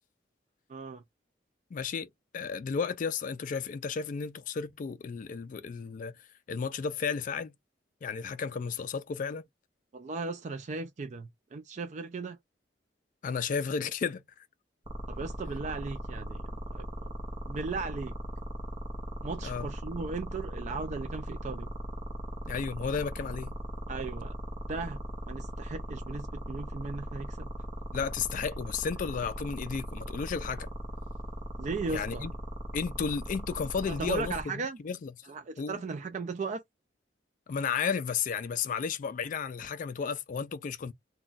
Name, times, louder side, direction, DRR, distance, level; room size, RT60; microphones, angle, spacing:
voice 1, 0.7-1.0 9.9-12.4 15.1-17.1 17.5-18.1 19.2-21.7 23.9-24.3 24.7-25.0 25.3-27.5 31.6-32.3 33.8-34.8 35.3-36.6, right 4 dB, 40° right, 0.4 m, -37 dB
voice 2, 1.7-2.1 2.3-6.1 6.5-7.5 8.0-9.4 13.2-14.2 19.4-19.7 22.5-23.6 27.9-30.7 31.9-32.3 32.7-34.3 34.8-35.1 35.6-35.8 37.5-40.9, left 6 dB, 45° left, 0.3 m, -33 dB
sound 1, 14.9-34.4, equal, 25° right, 0.7 m, -38 dB
2.3 x 2.2 x 3.8 m
head